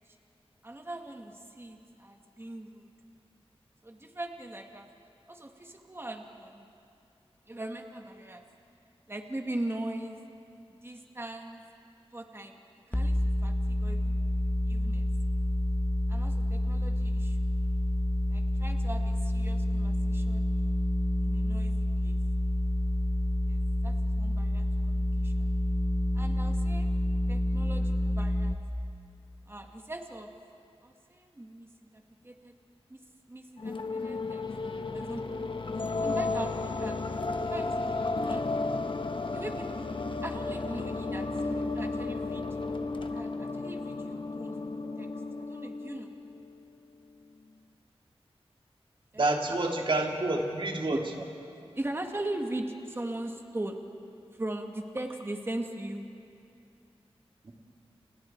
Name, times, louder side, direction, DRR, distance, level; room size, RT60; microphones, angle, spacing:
voice 1, 0.6-2.9 3.8-4.9 5.3-6.6 7.5-8.4 9.1-10.2 10.8-11.6 12.1-14.2 14.7-15.1 16.1-17.4 18.3-20.8 21.2-22.2 23.5-23.6 23.8-25.5 26.1-26.9 27.3-28.6 29.5-30.3 30.8-31.7 31.9-32.5 32.9-34.4 34.9-35.5 36.0-37.0 37.3-37.8 38.2-38.5 39.3-40.0 40.2-42.4 43.0-45.1 45.4-46.2 49.1-49.6 50.9-51.3 51.7-53.8 54.3-56.0, right 1 dB, 25° right, 3 dB, 2.0 m, -40 dB
sound 1, 12.9-28.6, left 1 dB, 15° left, 1.5 m, -28 dB
sound 2, 33.6-46.5, left 3 dB, 55° left, 1.2 m, -33 dB
voice 2, 49.2-51.0 57.4-57.5, right 2 dB, 55° right, 0 dB, 3.2 m, -28 dB
30.0 x 29.5 x 4.7 m, 2.5 s
wide cardioid pair, 65°, 10 cm